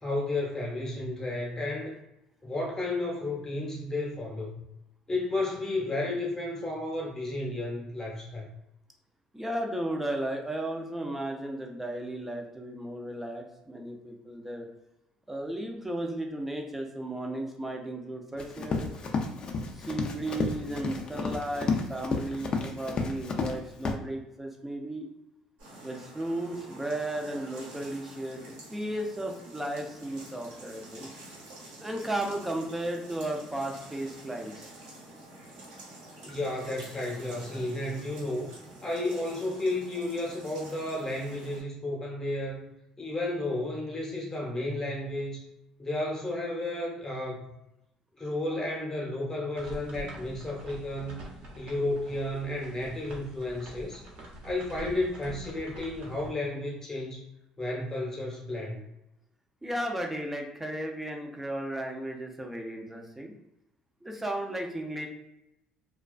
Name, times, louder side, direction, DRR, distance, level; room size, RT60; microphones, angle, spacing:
voice 1, 0.0-2.0 2.4-4.6 5.1-8.5 36.2-38.6 38.8-42.7 43.0-45.4 45.8-47.4 48.2-51.3 51.6-54.0 54.4-57.2 57.6-58.8, left 2 dB, 25° left, -2 dB, 0.9 m, -32 dB
voice 2, 9.3-14.7 15.3-18.9 19.7-25.1 25.8-28.4 28.7-31.1 31.8-34.7 59.6-63.3 64.0-65.1, right 1 dB, 10° right, 2 dB, 0.5 m, -34 dB
Run, 18.4-23.6 23.8-23.9, left 4 dB, 45° left, 0.4 m, -31 dB
sound 1, 25.6-41.6, right 2 dB, 85° right, 1.0 m, -48 dB
sound 2, 49.5-56.3, right 1 dB, 60° right, 0.8 m, -45 dB
2.3 x 2.3 x 2.4 m, 0.88 s
supercardioid pair, 85°, 2 cm